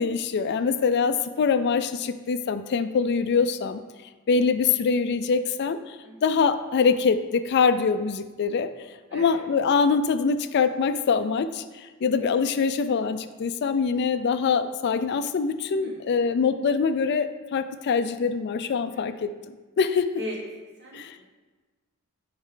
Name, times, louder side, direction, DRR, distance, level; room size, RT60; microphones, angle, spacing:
voice 1, 0.0-3.8 4.3-6.0 6.2-8.7 9.1-20.1 20.9-21.2, left 5 dB, 50° left, 11 dB, 0.4 m, -24 dB
voice 2, 9.1-9.4 15.7-16.0 18.9-19.2 20.2-20.4 20.8-21.3, left 1 dB, 55° right, -5 dB, 2.3 m, -39 dB
10.5 x 4.4 x 3.8 m, 1.3 s
head